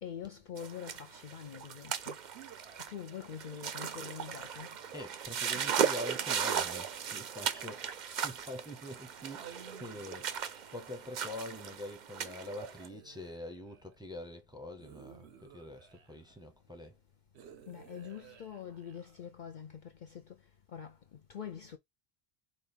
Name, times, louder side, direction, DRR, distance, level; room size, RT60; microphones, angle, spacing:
voice 1, 0.0-2.2 2.9-4.7 17.7-20.4 20.7-21.8, left 8 dB, 55° left, 0.6 m, -45 dB
sound 1, 0.6-12.9, right 7 dB, 55° right, 0.6 m, -37 dB
sound 2, 2.3-3.9 4.6-5.5 6.4-8.6 9.2-11.1 12.2-14.0 14.8-16.4 17.3-19.3, right 7 dB, 85° right, 1.0 m, -55 dB
voice 2, 4.9-10.4 10.7-16.9, left 1 dB, 5° right, 0.8 m, -45 dB
5.2 x 2.3 x 4.3 m
omnidirectional pair, 1.1 m